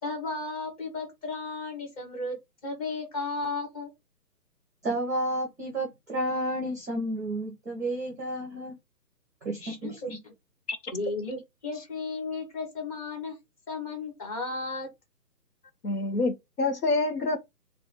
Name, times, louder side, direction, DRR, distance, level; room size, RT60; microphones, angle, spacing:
voice 1, 0.0-2.4 2.6-3.9 9.5-10.3 10.9-13.4 13.7-14.9, left 3 dB, 20° left, 1.3 m, -34 dB
voice 2, 4.8-8.7 9.4-10.2, right 1 dB, 10° right, 0.6 m, -31 dB
voice 3, 15.8-17.4, left 2 dB, 65° left, 1.0 m, -27 dB
3.1 x 3.0 x 4.4 m
figure-of-eight pair, 145°, 50 cm